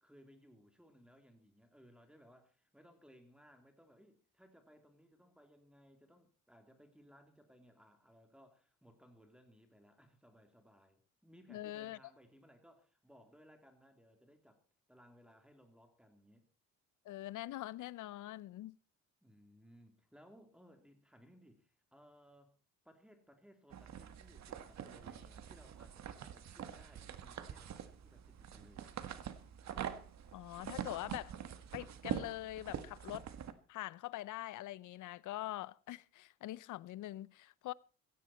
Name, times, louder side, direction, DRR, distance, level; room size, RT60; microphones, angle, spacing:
voice 1, 0.0-14.6 14.9-16.5 19.2-22.5 22.8-28.9, equal, 5° right, 3.3 m, -63 dB
voice 2, 11.5-12.0 17.0-18.8 30.3-31.3 31.7-33.3 33.7-37.7, left 15 dB, 80° left, 0.7 m, -44 dB
sound 1, 23.7-33.5, right 9 dB, 65° right, 1.8 m, -45 dB
16.5 x 15.0 x 4.4 m
cardioid pair, 90°, 30 cm